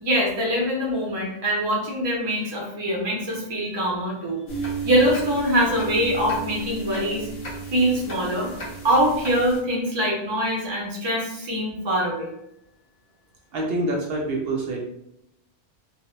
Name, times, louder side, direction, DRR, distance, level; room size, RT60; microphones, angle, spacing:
voice 1, 0.0-4.4 4.8-7.3 7.7-8.5 8.8-12.3, equal, 40° right, -2 dB, 0.3 m, -23 dB
sound 1, 4.5-9.6, right 4 dB, 45° left, 0.7 m, -33 dB
voice 2, 13.5-14.8, right 2 dB, 65° right, -1 dB, 0.7 m, -26 dB
2.0 x 2.0 x 3.0 m, 0.79 s
omnidirectional pair, 1.2 m